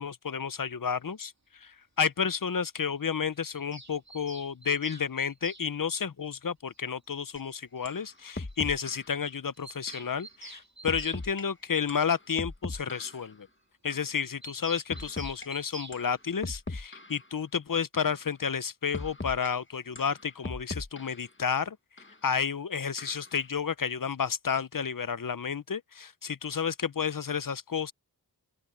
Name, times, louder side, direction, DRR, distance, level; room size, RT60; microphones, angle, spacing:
voice 1, 0.0-1.3 1.6-13.5 13.8-21.8 22.2-27.9, left 6 dB, 55° left, 0.7 m, -31 dB
Bird vocalization bird call bird song, 3.5-5.7 7.1-7.2 7.4-7.5 7.8-7.9 8.2-8.3 8.5-8.6 8.9-9.0 9.3-11.2 14.4-16.0, right 2 dB, 40° right, 2.5 m, -47 dB
sound 1, 7.4-7.5 7.9-8.0 8.4-9.1 9.9-10.1 10.9-11.4 11.9-13.3 13.9-14.1 14.9-15.5 15.9-16.1 16.4-17.3 17.9-18.2 18.9-19.5 20.0-21.3 22.0-22.1 23.0-23.4, left 2 dB, 30° left, 1.2 m, -39 dB
open air
wide cardioid pair, 40°, 40 cm